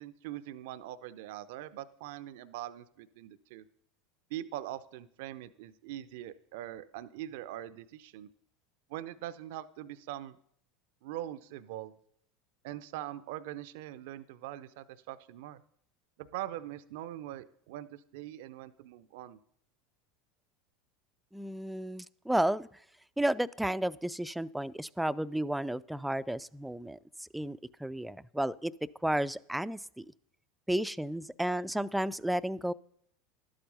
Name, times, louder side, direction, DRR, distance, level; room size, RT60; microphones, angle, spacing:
voice 1, 0.0-3.7 4.3-8.3 8.9-10.4 11.0-11.9 12.6-15.6 16.2-19.4, right 13 dB, 65° right, 14 dB, 0.5 m, -42 dB
voice 2, 21.3-22.7 23.2-28.7 29.0-30.1 30.7-32.7, right 1 dB, 5° right, 17 dB, 0.4 m, -32 dB
12.0 x 8.7 x 5.3 m, 0.67 s
hypercardioid pair, 80°, 0 cm